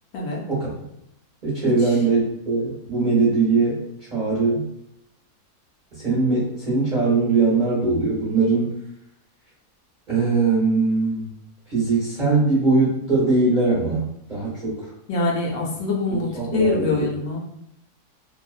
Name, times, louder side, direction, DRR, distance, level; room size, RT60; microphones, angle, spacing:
voice 1, 1.4-3.8 4.1-4.7 6.0-8.8 10.1-11.3 11.7-14.9 16.2-17.0, right 3 dB, 40° right, -8 dB, 0.8 m, -21 dB
voice 2, 15.1-17.4, left 3 dB, 75° left, -1 dB, 1.0 m, -24 dB
2.6 x 2.2 x 2.4 m, 0.78 s
omnidirectional pair, 1.7 m